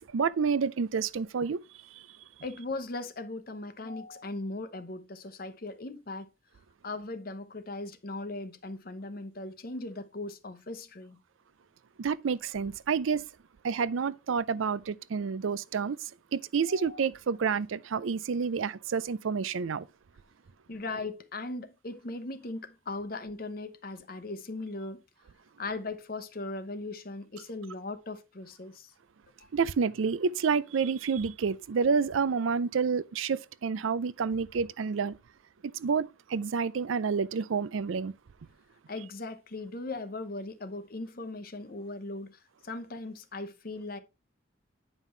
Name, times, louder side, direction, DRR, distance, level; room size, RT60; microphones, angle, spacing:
voice 1, 0.0-1.6 1.9-2.0 12.0-13.2 13.6-16.0 16.3-19.9 29.5-35.2 35.6-38.1, right 5 dB, 80° right, 0.4 m, -29 dB
voice 2, 2.4-6.3 6.8-11.2 16.7-17.1 20.7-25.0 25.6-28.9 29.4-29.5 38.9-44.0, left 2 dB, 45° left, 0.8 m, -38 dB
9.1 x 5.5 x 3.2 m
head